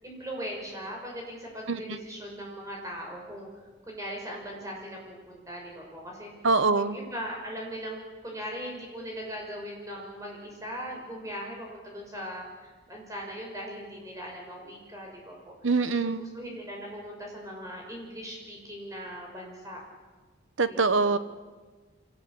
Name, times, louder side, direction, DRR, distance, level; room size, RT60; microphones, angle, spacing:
voice 1, 0.0-3.5 3.9-6.3 6.8-15.5 15.9-19.8 20.7-21.2, equal, 15° right, -1 dB, 6.3 m, -39 dB
voice 2, 6.4-7.0 15.6-16.2 20.6-21.2, right 4 dB, 80° right, 12 dB, 1.2 m, -24 dB
25.0 x 18.5 x 8.7 m, 1.4 s
head